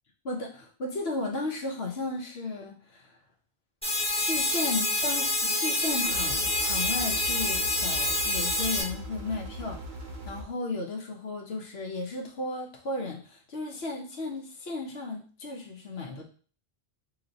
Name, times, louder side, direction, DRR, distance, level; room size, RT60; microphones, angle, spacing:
voice 1, 0.2-3.1 4.2-9.8 10.3-16.2, left 3 dB, 80° left, 2 dB, 1.1 m, -34 dB
sound 1, 3.8-8.8, left 2 dB, 5° left, 1.2 m, -27 dB
sound 2, 6.0-10.4, right 1 dB, 55° right, 0.7 m, -40 dB
3.1 x 2.9 x 3.9 m, 0.41 s
omnidirectional pair, 1.0 m